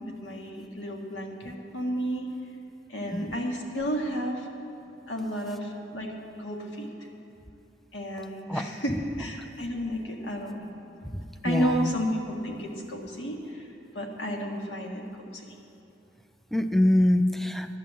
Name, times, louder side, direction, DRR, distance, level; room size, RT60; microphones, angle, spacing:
voice 1, 0.0-2.3 2.9-4.5 5.1-6.9 7.9-10.7 11.4-13.7 13.9-15.1 15.3-15.5, equal, 70° left, 0 dB, 1.9 m, -32 dB
voice 2, 11.0-11.9 16.5-17.7, left 1 dB, ahead, 8 dB, 0.4 m, -24 dB
11.5 x 10.5 x 7.4 m, 2.9 s
head